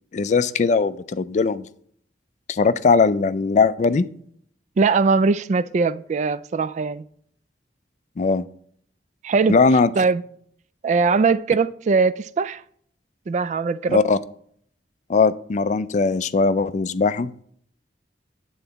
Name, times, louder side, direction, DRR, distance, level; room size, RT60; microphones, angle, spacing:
voice 1, 0.1-1.7 2.5-4.1 8.2-8.5 9.5-9.9 13.9-14.2 15.1-17.3, left 4 dB, 45° left, 0.4 m, -19 dB
voice 2, 4.8-7.0 9.2-9.6 10.0-10.2 10.8-12.6 13.3-14.0, right 4 dB, 45° right, 0.3 m, -20 dB
9.3 x 3.9 x 6.8 m
head